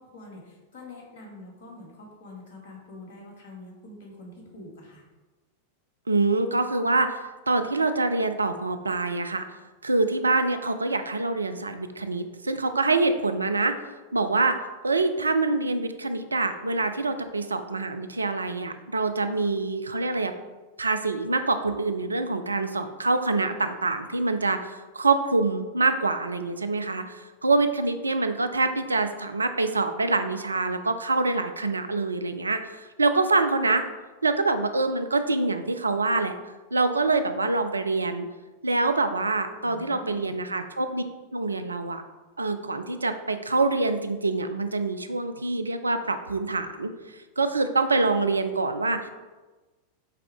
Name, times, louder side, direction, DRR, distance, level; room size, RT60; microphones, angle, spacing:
voice 1, 0.0-5.0 39.6-40.4, left 2 dB, 55° left, -1 dB, 1.7 m, -45 dB
voice 2, 6.1-7.2 7.5-13.7 14.1-14.6 14.8-20.3 20.8-33.8 34.2-36.3 36.7-38.3 38.6-41.0 41.3-42.0 42.4-49.1, right 3 dB, 80° right, 9 dB, 0.4 m, -25 dB
8.3 x 3.6 x 3.4 m, 1.2 s
figure-of-eight pair, 90°, 0 cm